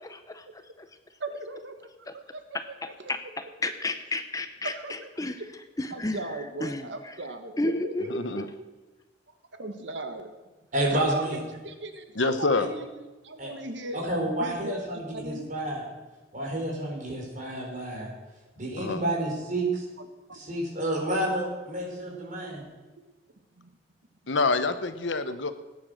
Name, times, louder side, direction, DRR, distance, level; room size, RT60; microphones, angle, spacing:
voice 1, 0.3-0.6 2.5-5.4 5.8-6.2 6.6-7.1 7.6-8.4, left 2 dB, 20° left, 9 dB, 0.7 m, -32 dB
voice 2, 1.2-2.4 4.7-5.1 5.9-8.3 8.6-8.7 9.5-10.3 10.9-11.4 11.6-14.0 14.4-15.5 20.0-20.4 22.0-22.2 23.6-23.7 25.2-25.4, right 2 dB, 80° right, 7 dB, 1.5 m, -38 dB
voice 3, 10.7-11.4 12.5-12.6 13.4-13.5 13.9-15.8 16.3-18.1 18.6-19.8 20.3-22.6, right 1 dB, 45° right, -1 dB, 4.7 m, -30 dB
voice 4, 12.2-12.7 18.8-19.0 24.3-25.5, left 3 dB, 90° left, 10 dB, 1.0 m, -26 dB
18.5 x 9.6 x 6.5 m, 1.2 s
head